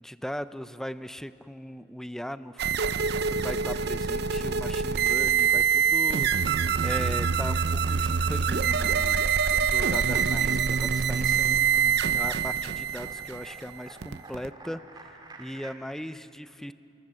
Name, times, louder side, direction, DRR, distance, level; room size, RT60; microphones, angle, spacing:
voice 1, 0.0-2.6 3.3-9.2 9.6-16.7, equal, ahead, 13 dB, 0.5 m, -38 dB
sound 1, 2.6-14.5, right 6 dB, 60° right, 0.6 m, -25 dB
sound 2, 5.9-6.6 6.9-15.7, right 2 dB, 25° right, 2.3 m, -52 dB
25.0 x 22.5 x 7.6 m, 2.7 s
head